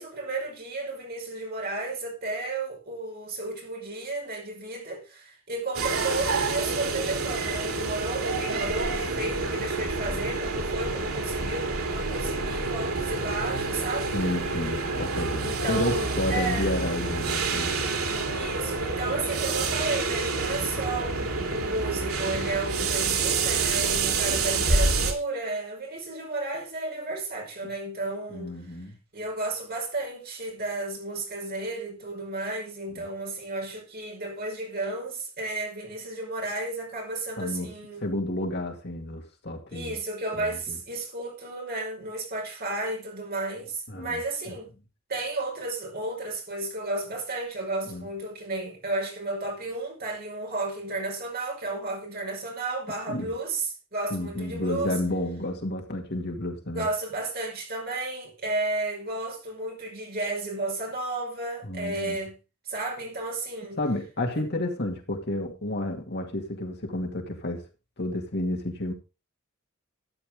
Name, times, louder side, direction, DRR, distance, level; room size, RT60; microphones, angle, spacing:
voice 1, 0.0-14.1 15.4-16.7 18.3-28.5 29.1-38.1 39.7-44.7 45.1-55.0 56.7-62.3 62.7-63.8, right 2 dB, 45° right, 5.4 m, -33 dB
sound 1, 5.7-25.1, right 3 dB, 90° right, 3.2 m, -28 dB
voice 2, 14.1-17.8 28.3-29.0 33.0-33.1 37.4-37.7 38.0-40.0 40.4-40.8 43.9-44.2 44.5-44.6 47.9-48.1 53.1-53.3 54.1-56.9 61.6-62.2 63.8-67.6 68.0-68.9, left 1 dB, 50° left, 2.4 m, -31 dB
13.0 x 9.9 x 3.7 m
head